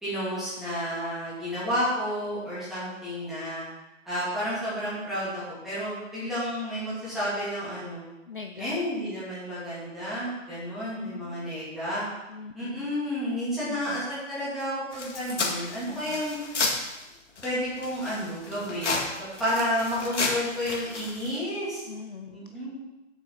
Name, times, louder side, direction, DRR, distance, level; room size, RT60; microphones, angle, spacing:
voice 1, 0.0-3.6 4.0-8.0 8.6-12.0 12.5-16.4 17.4-21.8 22.3-22.8, equal, ahead, -12 dB, 2.5 m, -31 dB
voice 2, 8.3-8.8 11.0-11.5 12.3-12.9 13.7-14.0 15.9-16.2 21.9-22.7, left 5 dB, 45° left, 6 dB, 0.5 m, -42 dB
sound 1, 14.9-17.0 17.4-21.4, left 3 dB, 65° left, 2.0 m, -32 dB
7.4 x 6.0 x 5.9 m, 1.0 s
hypercardioid pair, 155°, 39 cm